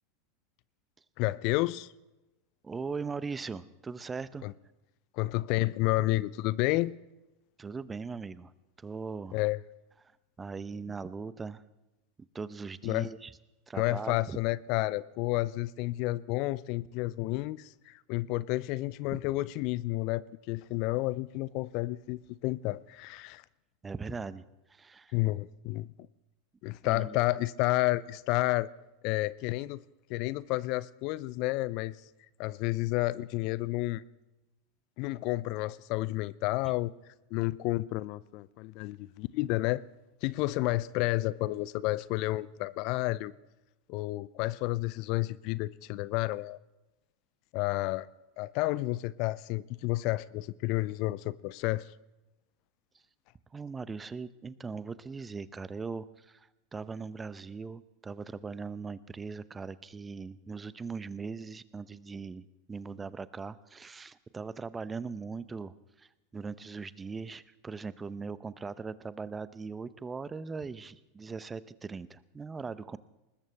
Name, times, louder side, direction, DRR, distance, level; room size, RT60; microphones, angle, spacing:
voice 1, 1.2-1.9 4.4-4.5 5.1-6.9 9.3-9.6 12.8-13.1 13.8-23.4 25.1-25.9 26.6-28.7 29.0-29.8 30.1-32.0 32.4-34.0 35.0-36.9 37.3-39.8 40.2-43.3 43.9-46.6 47.5-48.1 48.4-51.9, left 19 dB, 55° left, 0.4 m, -30 dB
voice 2, 2.6-4.5 7.6-8.5 8.8-9.4 10.4-11.6 12.3-13.3 13.7-14.4 19.1-19.2 23.8-24.4 24.7-25.1 26.8-27.2 53.5-73.0, right 4 dB, 20° right, 0.7 m, -40 dB
20.5 x 20.0 x 3.4 m
hypercardioid pair, 90°, 0 cm